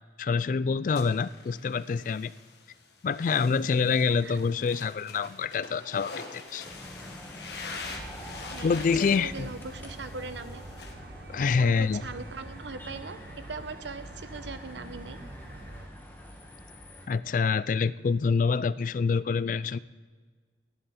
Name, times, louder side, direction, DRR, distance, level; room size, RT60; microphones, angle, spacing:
voice 1, 0.2-2.3 3.0-6.6 8.6-9.5 11.3-12.0 17.1-19.8, left 5 dB, 45° left, 18 dB, 0.3 m, -26 dB
sound 1, 1.0-10.9, left 4 dB, 70° left, 1.6 m, -45 dB
sound 2, 6.6-17.1, left 1 dB, 10° left, 1.5 m, -47 dB
sound 3, 7.8-15.9, right 1 dB, 60° right, 0.9 m, -45 dB
voice 2, 8.5-10.6 11.4-13.2 13.5-15.2, right 4 dB, 85° right, 11 dB, 0.8 m, -40 dB
17.0 x 11.0 x 4.3 m, 1.5 s
head